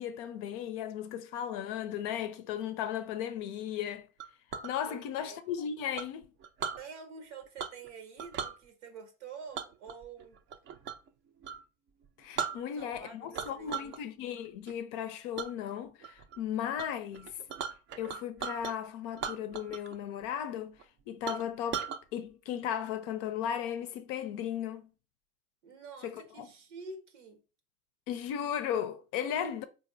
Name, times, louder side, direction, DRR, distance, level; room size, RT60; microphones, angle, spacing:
voice 1, 0.0-4.1 4.6-6.3 12.2-17.3 18.0-20.8 21.1-21.9 22.1-24.9 26.0-26.5 28.1-29.6, left 9 dB, 60° left, 0.5 m, -36 dB
Chink clink, 4.2-4.7 6.0-6.8 7.6-7.9 8.2-8.6 9.5-11.1 11.4-11.6 12.0-12.1 12.4-13.0 13.3-14.0 14.4-14.7 15.4-15.5 16.0-16.4 16.8-16.9 17.1-18.7 19.1-20.0 20.2-20.3 20.8-20.9 21.3-22.0, right 7 dB, 35° right, 0.4 m, -38 dB
voice 2, 4.9-5.4 6.8-10.4 12.5-13.9 25.6-27.4 29.2-29.6, right 5 dB, 80° right, 0.8 m, -47 dB
3.9 x 2.5 x 2.5 m
hypercardioid pair, 85°, 34 cm